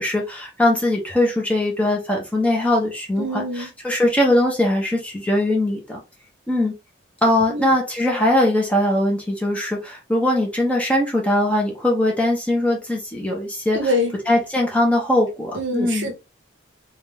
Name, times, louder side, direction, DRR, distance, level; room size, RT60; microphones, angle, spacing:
voice 1, 0.0-6.0 6.5-6.8 7.2-13.8 14.3-16.1, left 1 dB, 5° left, 1.1 m, -21 dB
voice 2, 3.2-3.7 7.5-7.8 13.7-14.2 15.5-16.1, left 1 dB, 75° right, 1.1 m, -25 dB
3.8 x 2.7 x 3.5 m
head